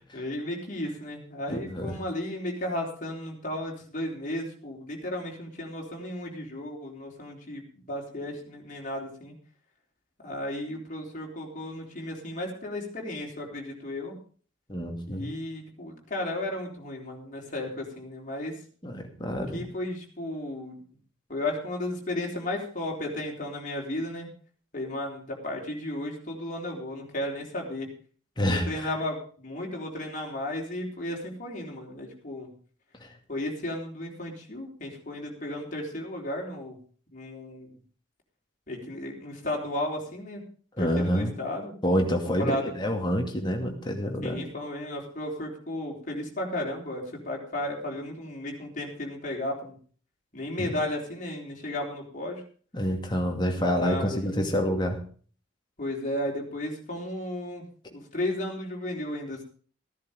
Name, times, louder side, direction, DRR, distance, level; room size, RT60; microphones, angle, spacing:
voice 1, 0.1-9.3 10.2-14.2 15.1-18.6 19.5-20.8 21.3-24.3 24.7-27.9 28.5-32.5 33.3-36.8 37.1-37.7 38.7-40.4 40.8-41.7 42.2-42.7 44.2-49.8 50.3-52.4 53.7-54.5 55.8-57.6 57.9-59.4, left 1 dB, 40° left, -1 dB, 3.9 m, -34 dB
voice 2, 1.5-2.0 14.7-15.3 18.8-19.7 28.4-28.9 33.0-33.1 40.8-41.3 41.8-44.4 50.6-50.7 52.7-55.0, equal, 20° left, 3 dB, 2.4 m, -28 dB
15.0 x 10.5 x 5.1 m, 0.43 s
head